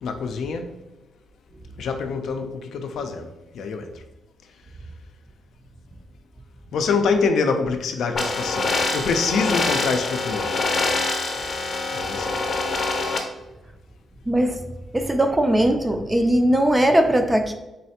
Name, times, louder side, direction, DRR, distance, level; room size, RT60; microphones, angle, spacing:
voice 1, 0.0-0.7 1.8-3.3 3.5-3.9 6.7-10.5 11.9-12.3, left 4 dB, 75° left, 5 dB, 0.4 m, -25 dB
sound 1, 8.1-13.2, left 3 dB, 40° left, 0.7 m, -25 dB
voice 2, 14.3-14.6 14.9-17.5, right 1 dB, 15° right, 6 dB, 0.4 m, -19 dB
3.9 x 3.3 x 2.8 m, 1.0 s
cardioid pair, 135°, 0 cm